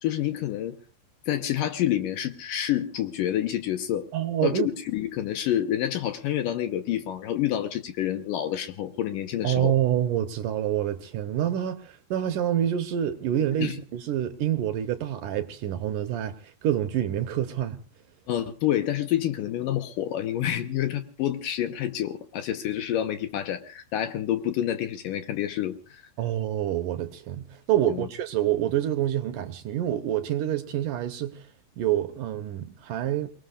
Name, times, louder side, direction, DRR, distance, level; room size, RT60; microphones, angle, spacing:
voice 1, 0.0-0.8 1.3-4.1 4.4-9.7 13.6-13.8 18.3-25.7 27.8-28.1, left 11 dB, 70° left, 2.4 m, -28 dB
voice 2, 4.1-4.7 9.4-16.4 16.6-17.8 26.2-31.4 31.8-33.3, right 11 dB, 70° right, 2.3 m, -27 dB
29.0 x 19.5 x 2.4 m
omnidirectional pair, 4.4 m